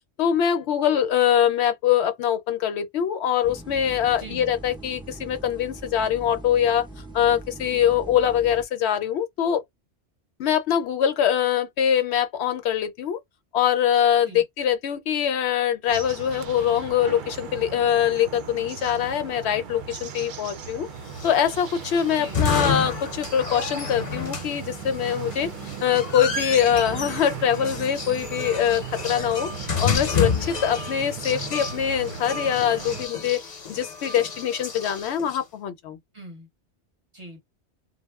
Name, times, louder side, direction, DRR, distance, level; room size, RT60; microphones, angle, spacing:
voice 1, 0.2-6.9 7.1-9.6 10.4-13.2 13.5-20.9 21.2-25.5 25.8-29.5 29.8-33.4 33.7-36.0, left 9 dB, 75° left, 0.8 m, -23 dB
sound 1, 3.4-8.6, right 2 dB, 10° right, 0.3 m, -42 dB
sound 2, 15.9-33.1, right 7 dB, 60° right, 0.6 m, -37 dB
sound 3, 21.1-35.4, left 5 dB, 45° left, 0.6 m, -30 dB
voice 2, 22.1-22.5 25.3-25.8 30.6-30.9 36.1-36.5 37.1-37.4, right 2 dB, 30° right, 0.8 m, -43 dB
2.4 x 2.0 x 3.4 m
omnidirectional pair, 1.2 m